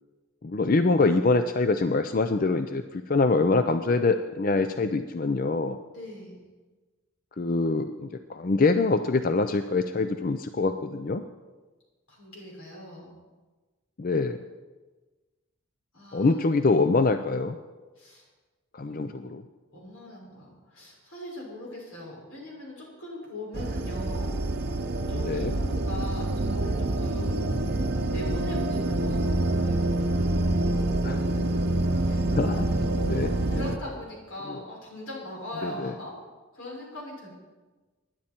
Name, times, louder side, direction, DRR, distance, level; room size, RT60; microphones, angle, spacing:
voice 1, 0.4-5.8 7.4-11.2 14.0-14.4 16.1-17.6 18.7-19.4 25.1-25.5 31.0-31.4 32.1-32.6 33.0-33.6 34.5-34.6 35.6-35.9, left 3 dB, 40° left, 9 dB, 0.5 m, -25 dB
voice 2, 5.9-6.4 12.1-13.1 15.9-16.4 18.0-18.2 18.8-19.1 19.7-24.4 25.1-27.5 28.1-29.8 33.5-36.1 36.5-37.3, left 1 dB, 85° left, -3 dB, 6.0 m, -40 dB
sound 1, 23.5-33.8, right 2 dB, 50° right, 0.8 m, -26 dB
21.0 x 10.0 x 4.4 m, 1.3 s
head